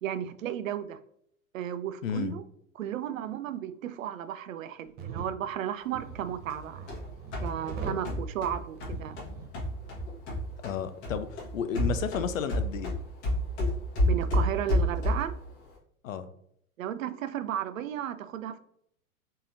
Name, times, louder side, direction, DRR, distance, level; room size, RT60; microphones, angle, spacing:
voice 1, 0.0-1.0 1.5-2.4 2.8-7.0 7.4-9.2 14.0-15.3 16.8-18.6, right 10 dB, 65° right, 12 dB, 0.5 m, -34 dB
voice 2, 2.0-2.4 10.6-12.9 16.0-16.3, left 7 dB, 65° left, 11 dB, 0.5 m, -32 dB
sound 1, 4.8-5.3 5.9-8.1 8.8-9.5 9.8-10.0, right 5 dB, 20° right, 0.6 m, -41 dB
sound 2, 6.5-10.8 11.0-15.4, equal, 50° left, 1.6 m, -30 dB
4.0 x 3.8 x 2.6 m, 0.70 s
figure-of-eight pair, 90°, 43 cm